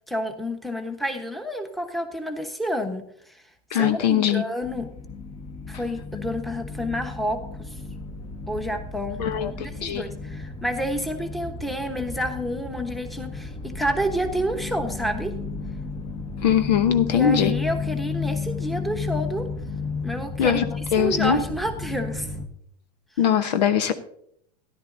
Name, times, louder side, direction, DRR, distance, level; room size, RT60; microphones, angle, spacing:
voice 1, 0.1-3.1 3.7-4.9 5.7-7.7 8.5-15.3 17.1-19.5 20.0-20.6 21.0-22.3, equal, ahead, 6 dB, 1.1 m, -29 dB
voice 2, 3.7-4.4 9.2-10.1 16.4-17.5 20.4-20.7 20.9-21.4 23.2-23.9, left 9 dB, 80° left, 9 dB, 1.0 m, -21 dB
sound 1, 4.6-22.5, left 4 dB, 25° left, 1.2 m, -33 dB
13.5 x 11.0 x 2.7 m, 0.69 s
supercardioid pair, 120°, 21 cm